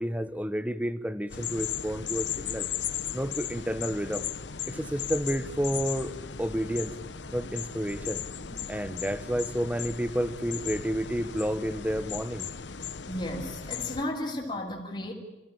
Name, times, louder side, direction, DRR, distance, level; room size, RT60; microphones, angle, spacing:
voice 1, 0.0-2.7 3.1-4.3 4.7-6.9 7.3-8.2 8.5-12.5, equal, 10° right, 13 dB, 1.1 m, -30 dB
sound 1, 1.3-14.0, left 8 dB, 80° left, 1.0 m, -36 dB
voice 2, 13.1-15.1, left 1 dB, 30° left, -5 dB, 3.5 m, -34 dB
28.5 x 16.0 x 8.8 m, 1.2 s
head